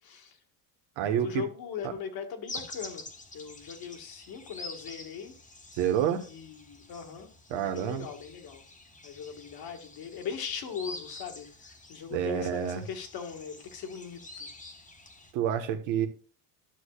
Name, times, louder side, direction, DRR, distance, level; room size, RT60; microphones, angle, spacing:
voice 1, 0.0-0.4 1.0-3.1 3.3-5.3 6.3-8.6 9.0-14.5, left 7 dB, 50° left, 1.8 m, -40 dB
voice 2, 1.0-1.4 5.8-6.2 7.5-8.1 12.1-12.8 15.3-16.1, right 9 dB, 70° right, 1.5 m, -28 dB
sound 1, 2.5-15.3, left 2 dB, 15° left, 1.5 m, -47 dB
12.0 x 6.6 x 2.4 m
cardioid pair, 125°, 46 cm